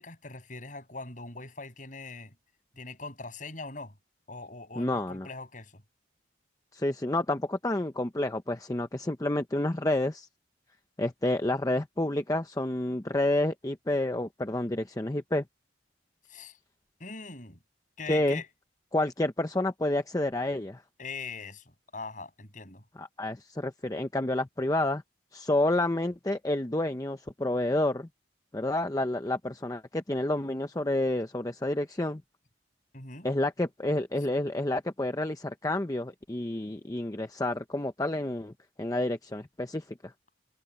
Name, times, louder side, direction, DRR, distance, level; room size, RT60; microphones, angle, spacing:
voice 1, 0.0-2.3 2.8-3.9 4.3-5.8 16.3-16.6 17.0-17.6 18.0-18.5 21.0-22.8 32.9-33.3, left 4 dB, 45° left, 7.6 m, -41 dB
voice 2, 4.8-5.3 6.7-10.3 11.0-15.4 18.1-18.4 18.9-20.8 23.0-25.0 25.3-28.1 28.5-32.2 33.2-40.1, left 1 dB, 20° left, 0.7 m, -29 dB
head